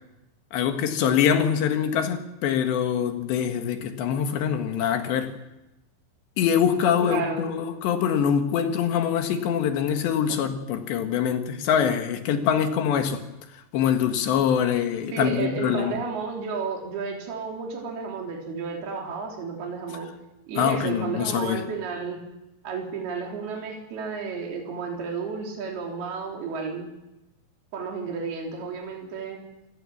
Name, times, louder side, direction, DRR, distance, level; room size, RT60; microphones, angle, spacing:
voice 1, 0.5-5.3 6.4-13.2 13.7-16.0 20.6-21.6, left 8 dB, 80° left, 3.8 m, -24 dB
voice 2, 7.0-7.5 10.3-10.4 15.1-20.1 20.5-22.2 22.6-26.9 27.7-29.4, right 5 dB, 65° right, 5.3 m, -32 dB
27.0 x 18.0 x 7.3 m
omnidirectional pair, 5.0 m